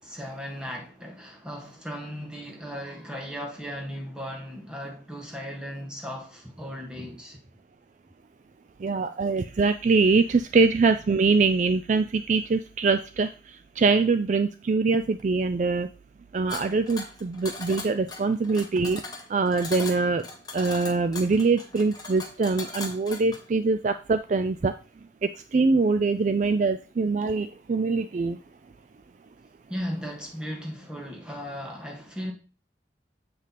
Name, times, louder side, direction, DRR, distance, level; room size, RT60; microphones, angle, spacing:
voice 1, 0.0-7.4 29.7-32.3, equal, 5° right, 1.6 m, -36 dB
voice 2, 8.8-15.9 16.3-19.0 19.3-20.2 20.5-24.7 25.2-28.4, right 4 dB, 40° right, 0.3 m, -23 dB
sound 1, 16.5-23.4, left 3 dB, 20° left, 1.3 m, -39 dB
7.8 x 5.2 x 4.1 m
head